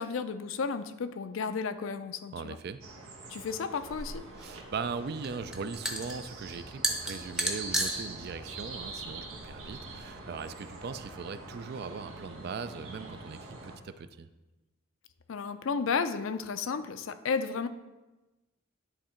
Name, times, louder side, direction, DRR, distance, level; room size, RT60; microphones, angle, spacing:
voice 1, 0.0-2.6 3.3-4.2 15.3-17.7, left 5 dB, 70° left, 11 dB, 0.5 m, -33 dB
voice 2, 2.3-2.8 4.4-14.3, right 5 dB, 50° right, 12 dB, 0.3 m, -39 dB
sound 1, 2.8-13.8, right 3 dB, 90° right, 1.3 m, -45 dB
sound 2, 3.9-10.0, right 1 dB, 5° right, 0.6 m, -36 dB
10.0 x 3.7 x 4.4 m, 1.1 s
head